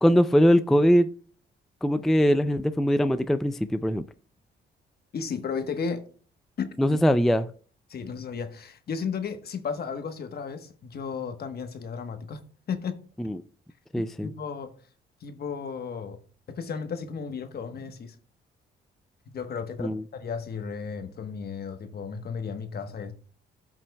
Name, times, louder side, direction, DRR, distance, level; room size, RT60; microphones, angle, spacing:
voice 1, 0.0-1.1 1.8-4.0 6.8-7.5 13.2-13.4 13.9-14.3 19.8-20.0, equal, ahead, 0.4 m, -21 dB
voice 2, 5.1-6.0 6.6-7.0 7.9-12.4 12.7-13.0 13.9-14.7 15.2-16.2 16.5-18.1 19.3-23.1, left 6 dB, 50° left, 1.1 m, -34 dB
14.0 x 5.9 x 2.2 m
cardioid pair, 90°, 20 cm